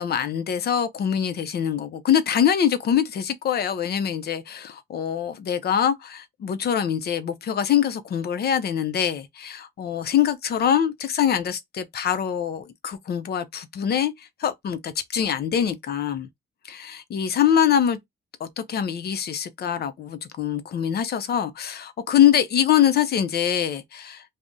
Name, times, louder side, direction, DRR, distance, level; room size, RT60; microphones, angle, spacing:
voice 1, 0.0-16.3 16.6-18.0 18.4-24.2, left 9 dB, 55° left, 0.6 m, -24 dB
2.6 x 2.1 x 3.6 m
cardioid pair, 90°, 20 cm